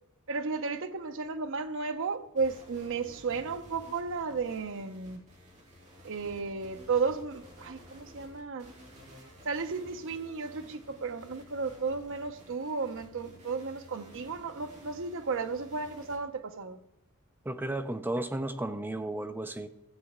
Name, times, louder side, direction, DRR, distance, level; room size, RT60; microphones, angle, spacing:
voice 1, 0.3-5.2 6.0-8.7 9.4-16.8, right 4 dB, 60° right, 0.7 m, -34 dB
sound 1, 2.4-16.2, equal, 35° right, 2.6 m, -53 dB
voice 2, 17.5-19.7, right 1 dB, 10° right, 0.4 m, -33 dB
14.5 x 8.1 x 3.6 m
head